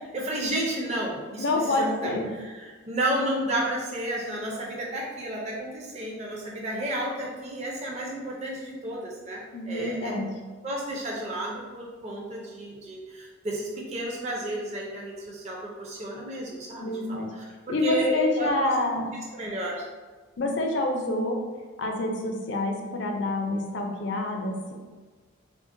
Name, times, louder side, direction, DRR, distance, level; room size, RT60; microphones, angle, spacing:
voice 1, 0.1-1.4 1.8-2.1 2.4-10.1 10.6-16.9 17.7-18.7 19.3-19.8, right 1 dB, 35° right, -3 dB, 0.4 m, -31 dB
voice 2, 1.4-2.3 9.5-10.3 16.8-17.3 17.7-19.1 20.4-21.4 21.8-24.7, left 2 dB, 55° left, 2 dB, 0.4 m, -27 dB
3.6 x 2.0 x 2.5 m, 1.4 s
head